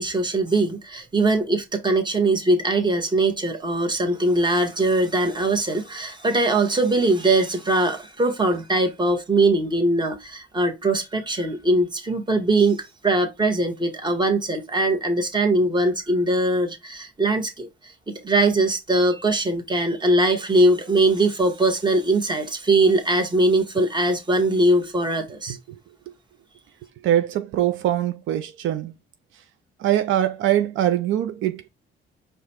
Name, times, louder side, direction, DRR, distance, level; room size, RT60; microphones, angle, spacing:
voice 1, 0.0-17.7 18.1-25.6, right 2 dB, 20° right, 1.2 m, -21 dB
voice 2, 27.0-28.9 29.8-31.7, right 11 dB, 80° right, 0.5 m, -22 dB
4.8 x 2.3 x 4.3 m
cardioid pair, 90°, 20 cm